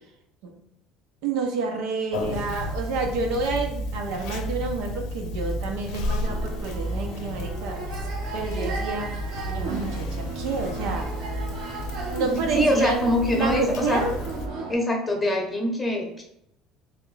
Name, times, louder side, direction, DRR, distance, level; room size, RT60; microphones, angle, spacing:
voice 1, 1.2-8.1 8.3-9.1 9.5-11.1 12.1-13.0 13.3-14.1, right 4 dB, 75° right, 2 dB, 1.0 m, -29 dB
Conversation, 2.1-14.5, left 1 dB, 75° left, 0.6 m, -32 dB
sound 1, 6.2-14.7, right 4 dB, 50° right, 0.9 m, -35 dB
voice 2, 12.5-14.0 14.7-16.2, left 1 dB, 5° left, 0 dB, 1.0 m, -24 dB
3.6 x 3.4 x 4.1 m, 0.78 s
cardioid pair, 160°, 0 cm